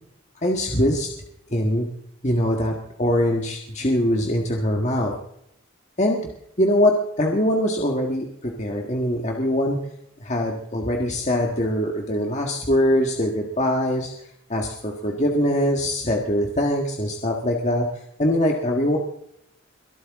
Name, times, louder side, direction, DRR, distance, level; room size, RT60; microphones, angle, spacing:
voice 1, 0.4-1.1 1.5-1.9 2.2-5.1 6.0-6.3 6.6-9.8 10.2-14.1 14.5-17.9 18.2-19.0, left 1 dB, 35° left, 1 dB, 1.6 m, -22 dB
23.0 x 12.5 x 3.7 m, 0.74 s
head